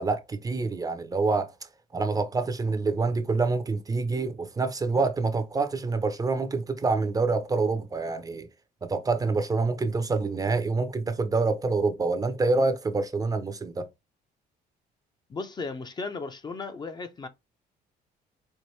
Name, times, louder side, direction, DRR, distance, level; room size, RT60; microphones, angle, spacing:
voice 1, 0.0-1.5 1.9-8.5 8.8-13.9, right 3 dB, 20° right, 0.5 m, -26 dB
voice 2, 15.3-17.3, left 4 dB, 25° left, 0.5 m, -35 dB
4.5 x 2.5 x 3.1 m
cardioid pair, 110°, 17 cm